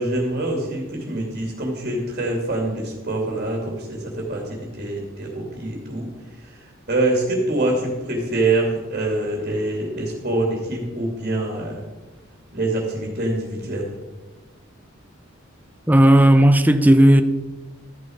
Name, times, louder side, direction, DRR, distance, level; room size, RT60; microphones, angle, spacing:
voice 1, 0.0-6.1 6.4-11.8 12.5-14.0, right 2 dB, 45° right, 2.6 m, -25 dB
voice 2, 15.9-17.2, right 1 dB, 10° right, 0.5 m, -13 dB
13.0 x 10.5 x 4.6 m
head